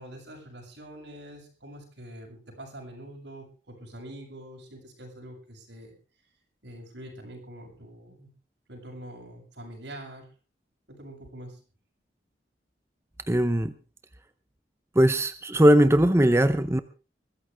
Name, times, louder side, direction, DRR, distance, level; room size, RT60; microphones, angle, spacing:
voice 1, 0.0-5.9 6.6-8.3 8.7-10.3 10.9-11.6, right 1 dB, 85° right, 1 dB, 7.7 m, -44 dB
voice 2, 13.3-13.7 15.0-16.8, equal, 15° right, 11 dB, 0.7 m, -20 dB
21.5 x 14.5 x 3.5 m, 0.35 s
head